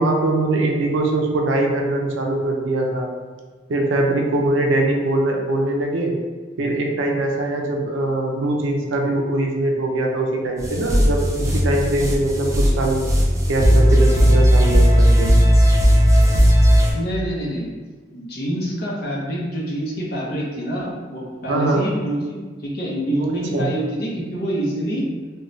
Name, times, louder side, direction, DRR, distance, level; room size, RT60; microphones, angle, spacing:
voice 1, 0.0-3.1 3.7-6.1 6.6-13.0 13.5-15.4 21.5-21.8 23.5-23.7, right 2 dB, 85° right, 1 dB, 0.4 m, -22 dB
sound 1, 10.6-16.9, equal, 15° right, 0.3 m, -15 dB
voice 2, 16.9-17.8 18.1-25.0, right 1 dB, 55° left, -3 dB, 0.6 m, -26 dB
3.1 x 2.2 x 2.5 m, 1.4 s
head